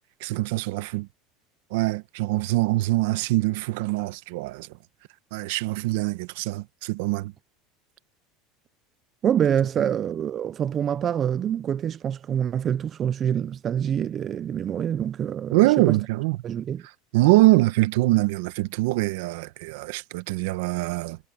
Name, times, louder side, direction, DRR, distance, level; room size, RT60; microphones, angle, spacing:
voice 1, 0.2-1.1 1.7-4.7 5.3-7.3 15.5-16.4 17.1-21.2, right 19 dB, 75° right, 1.2 m, -23 dB
voice 2, 9.2-15.6 15.9-16.0 16.4-16.8, right 9 dB, 35° right, 0.6 m, -26 dB
supercardioid pair, 120°, 0 cm